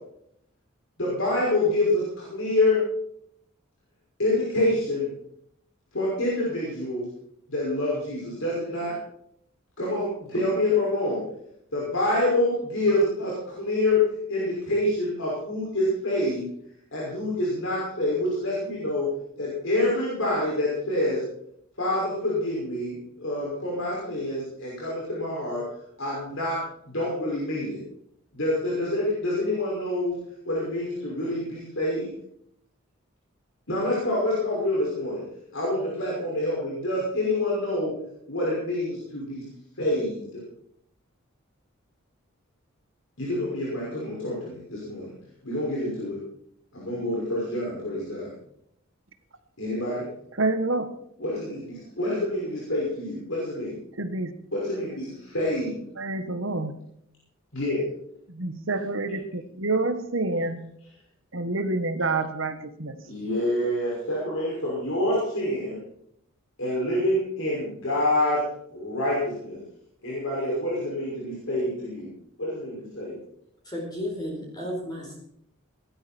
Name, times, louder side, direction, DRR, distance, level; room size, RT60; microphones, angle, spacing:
voice 1, 1.0-2.8 4.2-5.1 5.9-7.0 7.5-8.9 9.8-11.2 11.7-14.0 14.3-16.5 16.9-19.1 19.4-21.2 21.8-25.6 26.0-26.6 26.8-27.8 28.3-30.1 30.4-32.1 33.7-35.2 35.5-37.9 38.3-39.4 39.8-40.4 43.2-45.1 45.4-46.2 46.7-48.3 49.6-50.0 51.2-53.8 54.5-55.8 57.5-57.8 63.1-65.8 66.6-68.4 68.7-69.6 70.0-72.1 72.4-73.2, left 1 dB, 70° left, -5 dB, 6.0 m, -27 dB
voice 2, 50.3-50.9 54.0-54.3 55.9-56.7 58.3-60.7 61.3-63.0, right 2 dB, 65° right, 9 dB, 1.6 m, -28 dB
voice 3, 73.6-75.2, equal, 20° left, -2 dB, 4.3 m, -33 dB
19.0 x 12.0 x 4.5 m, 0.71 s
head